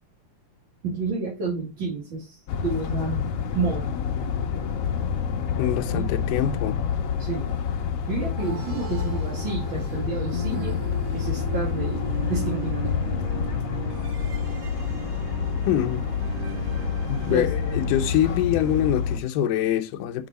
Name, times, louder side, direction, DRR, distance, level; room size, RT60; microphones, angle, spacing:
voice 1, 0.8-3.2 3.5-3.9 5.9-6.1 7.2-7.5 8.1-10.8 11.1-12.9 17.3-17.4, right 4 dB, 40° right, 2.6 m, -30 dB
sound 1, 2.5-19.2, left 7 dB, 65° left, 1.7 m, -28 dB
voice 2, 5.6-6.8 15.7-16.0 17.1-20.3, left 11 dB, 85° left, 2.3 m, -24 dB
sound 2, 8.4-18.4, right 5 dB, 75° right, 3.1 m, -37 dB
6.1 x 5.4 x 4.1 m
omnidirectional pair, 3.7 m